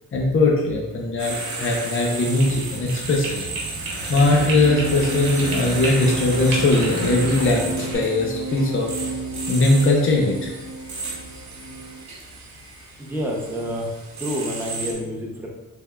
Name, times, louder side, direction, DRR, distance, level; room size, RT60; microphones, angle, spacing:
voice 1, 0.1-3.4 4.1-8.9 9.5-10.5, left 2 dB, 40° left, -1 dB, 0.6 m, -20 dB
sound 1, 1.2-14.9, right 3 dB, 55° right, 1.0 m, -34 dB
sound 2, 2.4-8.0, right 2 dB, 85° right, 0.9 m, -33 dB
sound 3, 4.1-12.1, right 1 dB, 85° left, 0.5 m, -32 dB
voice 2, 13.0-15.5, equal, 5° right, -2 dB, 0.7 m, -29 dB
3.4 x 3.3 x 2.3 m, 1.1 s
cardioid pair, 75°, 34 cm